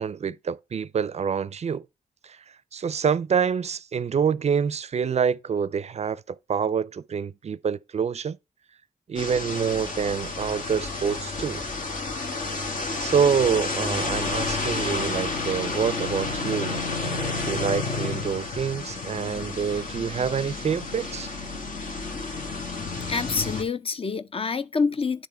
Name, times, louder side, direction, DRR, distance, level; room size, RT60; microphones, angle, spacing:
voice 1, 0.0-1.8 2.2-2.4 2.7-8.4 9.1-11.6 13.0-21.3, right 7 dB, 50° right, 0.4 m, -26 dB
sound 1, 9.2-23.6, left 3 dB, 65° left, 1.4 m, -30 dB
voice 2, 23.1-25.3, left 5 dB, 40° left, 0.5 m, -27 dB
9.8 x 3.5 x 4.4 m
cardioid pair, 50°, 15 cm